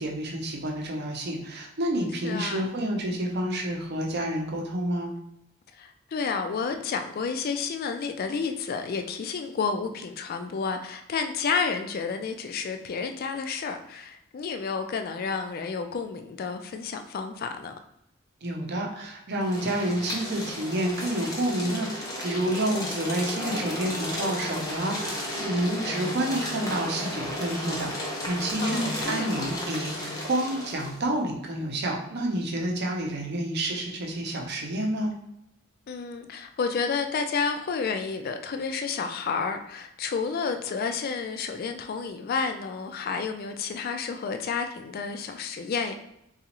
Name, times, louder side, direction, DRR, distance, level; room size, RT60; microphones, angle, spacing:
voice 1, 0.0-5.1 18.4-35.1, right 1 dB, 50° right, 1 dB, 0.6 m, -29 dB
voice 2, 2.2-2.7 5.8-17.7 28.6-29.5 35.9-45.9, left 5 dB, 45° left, 6 dB, 0.3 m, -30 dB
sound 1, 19.4-31.0, left 1 dB, 15° left, 0.7 m, -33 dB
3.9 x 2.4 x 2.9 m, 0.81 s
head